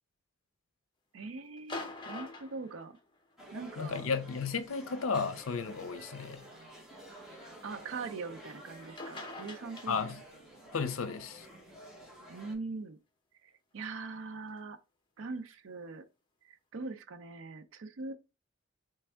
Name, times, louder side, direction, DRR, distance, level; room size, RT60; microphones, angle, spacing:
voice 1, 1.1-3.0 3.5-4.1 7.6-10.2 12.3-13.0 13.4-14.8 15.2-16.0 16.4-18.1, right 4 dB, 70° right, 0.5 m, -42 dB
sound 1, 1.6-3.5 4.8-4.9 5.8-5.9 8.7-8.8 9.0-10.4 13.8-13.9, left 2 dB, 25° left, 0.9 m, -44 dB
sound 2, 3.4-12.6, right 1 dB, ahead, 1.1 m, -51 dB
voice 2, 3.8-6.4 9.9-10.2 10.7-11.5, left 5 dB, 75° left, 0.6 m, -34 dB
3.4 x 3.3 x 3.3 m
head